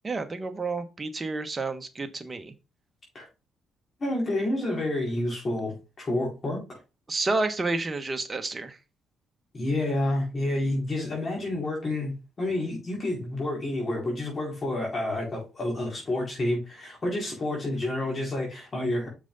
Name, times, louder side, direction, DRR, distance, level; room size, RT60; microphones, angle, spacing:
voice 1, 0.0-2.5 7.1-8.8, right 3 dB, 25° right, 1.3 m, -30 dB
voice 2, 4.0-6.6 9.5-19.1, left 1 dB, 35° left, 4.4 m, -29 dB
6.7 x 6.1 x 4.0 m
cardioid pair, 90°, 0 cm